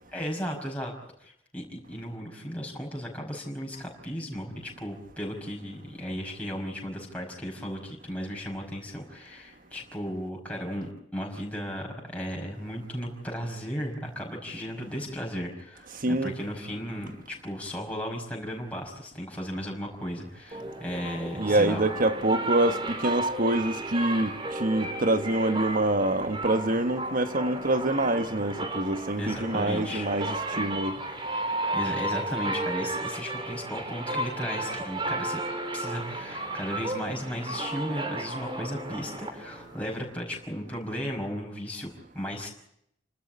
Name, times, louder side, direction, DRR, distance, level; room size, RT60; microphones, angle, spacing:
voice 1, 0.1-21.8 29.2-30.1 31.7-35.4 35.7-42.5, equal, 5° left, 5.3 m, -35 dB
voice 2, 16.0-16.4 21.3-30.9, right 1 dB, 45° right, 1.5 m, -26 dB
sound 1, 20.5-39.9, right 2 dB, 25° right, 3.4 m, -33 dB
29.0 x 13.0 x 8.5 m
head